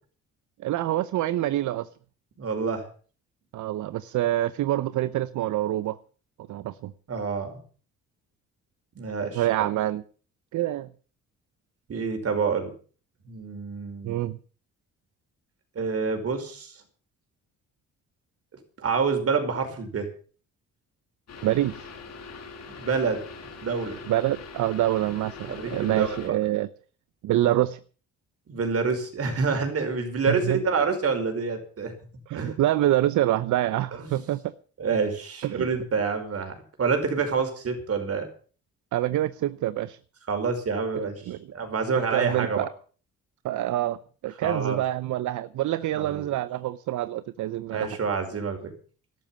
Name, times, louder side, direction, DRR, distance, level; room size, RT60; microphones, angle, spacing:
voice 1, 0.6-1.9 3.5-6.0 6.5-6.9 9.3-10.0 10.5-10.9 14.0-14.4 21.4-21.8 24.1-26.7 27.2-27.8 30.3-30.6 32.3-34.5 35.4-35.6 38.9-40.0 41.0-41.4 42.1-42.7 43.4-47.9, right 14 dB, 75° right, 0.8 m, -26 dB
voice 2, 2.4-2.9 7.1-7.6 9.0-9.4 11.9-12.7 13.3-14.2 15.8-16.8 18.8-20.1 22.7-23.2 23.6-24.0 25.5-26.3 28.5-32.0 32.3-32.6 34.0-34.2 34.8-36.5 36.8-38.3 40.3-41.2 41.5-42.7 44.4-44.8 46.0-46.3 47.7-48.7, right 5 dB, 50° right, 5.3 m, -27 dB
sound 1, 21.3-26.3, left 4 dB, 60° left, 6.1 m, -42 dB
12.5 x 12.5 x 7.3 m
cardioid pair, 90°, 30 cm